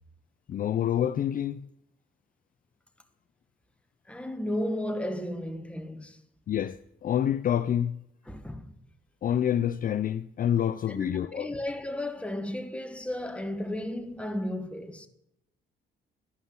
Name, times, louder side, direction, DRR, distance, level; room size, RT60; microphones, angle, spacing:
voice 1, 0.5-1.7 6.5-8.0 9.2-11.5, left 10 dB, 45° left, 0.4 m, -27 dB
voice 2, 4.1-6.2 8.3-8.8 10.9-15.1, left 1 dB, 5° left, 1.0 m, -34 dB
11.0 x 5.5 x 7.1 m
cardioid pair, 90°, 20 cm